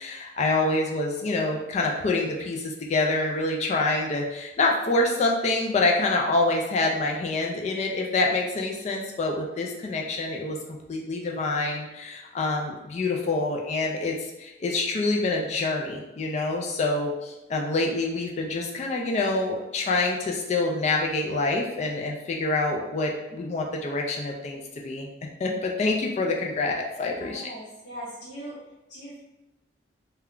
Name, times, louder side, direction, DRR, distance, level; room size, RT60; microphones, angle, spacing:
voice 1, 0.0-10.6 10.9-25.1 25.4-27.5, left 2 dB, 40° left, 0 dB, 0.3 m, -26 dB
voice 2, 27.2-28.5 28.9-29.2, right 1 dB, 80° left, -10 dB, 0.7 m, -40 dB
2.2 x 2.1 x 3.6 m, 0.99 s
head